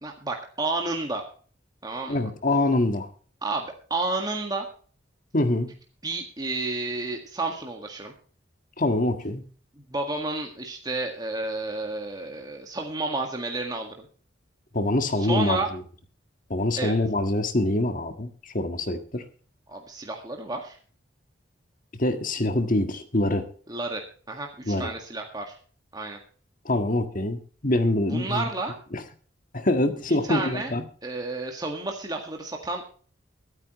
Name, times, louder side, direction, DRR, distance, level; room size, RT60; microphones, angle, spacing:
voice 1, 0.0-1.2 1.8-2.2 3.4-4.7 6.0-8.1 9.9-14.1 15.2-15.7 16.8-17.0 19.7-20.8 23.7-24.0 24.3-25.5 25.9-26.2 28.1-28.8 30.2-30.7 31.0-32.9, right 2 dB, 20° right, 2 dB, 1.8 m, -31 dB
voice 2, 2.1-3.1 5.3-5.7 8.8-9.4 14.7-15.6 16.5-19.2 22.0-23.5 24.6-24.9 26.6-28.5 28.9-29.0 29.5-30.8, left 1 dB, 45° left, 7 dB, 1.7 m, -25 dB
24.0 x 9.1 x 3.1 m, 0.43 s
head